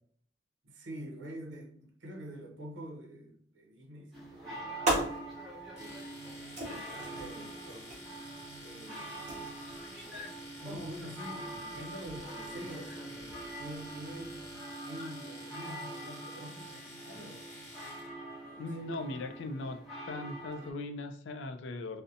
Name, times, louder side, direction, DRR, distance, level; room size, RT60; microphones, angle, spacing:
voice 1, 0.6-5.1 5.8-6.2 6.7-7.9 8.5-9.7 10.5-14.5 14.8-17.5 18.4-19.3, equal, 85° right, 0.6 m, -46 dB
sound 1, 4.1-20.7, right 2 dB, ahead, 0.8 m, -45 dB
sound 2, 4.1-14.5, right 2 dB, 40° right, 0.6 m, -41 dB
Domestic sounds home sounds, 5.7-18.1, left 1 dB, 40° left, 1.2 m, -50 dB
voice 2, 18.6-19.8 20.1-22.0, left 2 dB, 75° left, 0.3 m, -39 dB
2.6 x 2.0 x 2.5 m
head